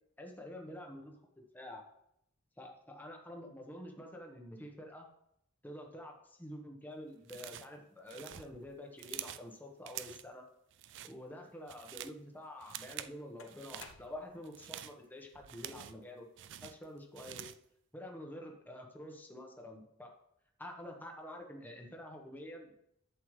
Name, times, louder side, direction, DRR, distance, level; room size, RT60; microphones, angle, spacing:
voice 1, 0.2-1.2 1.5-1.8 2.6-5.1 5.6-10.4 11.0-16.3 16.6-17.5 17.9-20.1 20.6-22.8, left 1 dB, 10° left, 1 dB, 1.2 m, -48 dB
sound 1, 7.3-7.8 8.1-9.5 9.9-10.3 10.7-11.1 11.5-12.2 12.6-13.2 13.5-13.9 14.4-16.0 16.4-17.7, right 12 dB, 60° right, 0.4 m, -47 dB
sound 2, 12.4-12.5 13.4-14.5, left 5 dB, 65° left, 0.8 m, -55 dB
11.0 x 8.0 x 3.3 m, 0.77 s
head